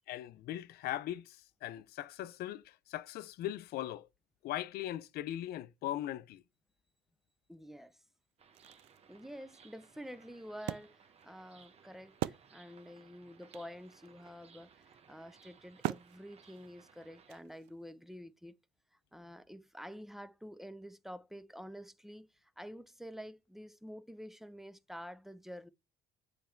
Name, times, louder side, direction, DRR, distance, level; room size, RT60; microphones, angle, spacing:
voice 1, 0.1-4.1 4.4-6.4, left 13 dB, 70° left, 0.5 m, -39 dB
voice 2, 7.5-8.0 9.1-18.6 18.9-25.7, equal, ahead, 0.6 m, -49 dB
Wood, 8.3-13.0 13.3-13.4 13.5-17.9, right 16 dB, 90° right, 0.4 m, -43 dB
sound 1, 8.4-17.4, right 6 dB, 35° right, 1.0 m, -62 dB
7.4 x 3.4 x 4.4 m
cardioid pair, 110°, 17 cm